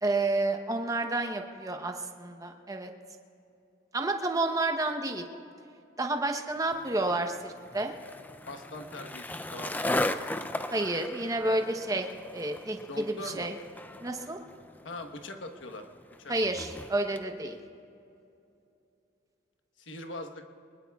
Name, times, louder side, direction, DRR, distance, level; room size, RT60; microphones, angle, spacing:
voice 1, 0.0-2.9 3.9-5.2 6.0-7.9 10.7-12.1 12.3-13.5 14.0-14.4 16.3-17.6, right 2 dB, 20° right, 5 dB, 0.9 m, -30 dB
Skateboard, 6.7-17.3, left 1 dB, 10° left, 0.4 m, -37 dB
voice 2, 8.5-10.1 12.9-13.5 14.8-15.9 16.2-16.3 19.8-20.4, left 2 dB, 80° left, 5 dB, 1.2 m, -41 dB
23.5 x 21.0 x 2.4 m, 2.7 s
head